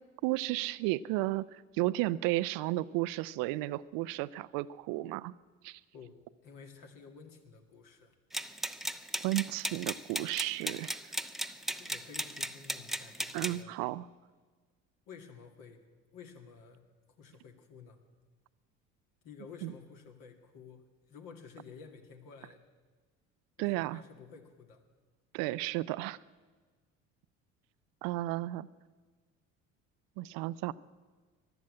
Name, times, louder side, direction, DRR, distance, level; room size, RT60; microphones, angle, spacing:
voice 1, 0.2-5.3 5.6-5.8 9.2-11.1 13.3-14.0 19.6-19.7 23.6-24.0 25.3-26.2 28.0-28.7 30.2-30.7, right 17 dB, 60° right, 17 dB, 0.6 m, -33 dB
voice 2, 5.9-8.1 11.8-13.7 15.1-15.8 16.1-16.8 17.2-18.0 19.2-22.6 23.6-24.8, left 6 dB, 60° left, 4 dB, 2.3 m, -52 dB
sound 1, 8.3-13.6, right 1 dB, ahead, 0.7 m, -36 dB
15.0 x 11.5 x 8.5 m, 1.4 s
hypercardioid pair, 65°, 38 cm